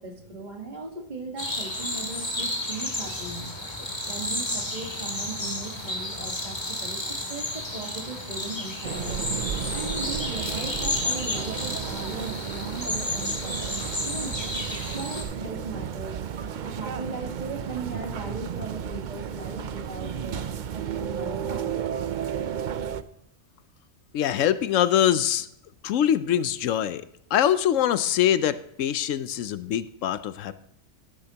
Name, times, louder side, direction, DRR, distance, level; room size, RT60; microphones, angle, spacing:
voice 1, 0.0-3.5 3.8-9.2 9.7-14.4 14.9-21.7, right 3 dB, 35° right, 2 dB, 1.7 m, -38 dB
sound 1, 1.4-15.2, left 1 dB, 20° left, 2.2 m, -32 dB
sound 2, 8.8-23.0, right 8 dB, 60° right, 0.5 m, -33 dB
voice 2, 24.1-25.5 25.8-27.0 27.3-30.5, left 10 dB, 75° left, 14 dB, 0.9 m, -23 dB
13.0 x 11.5 x 2.9 m, 0.76 s
omnidirectional pair, 1.3 m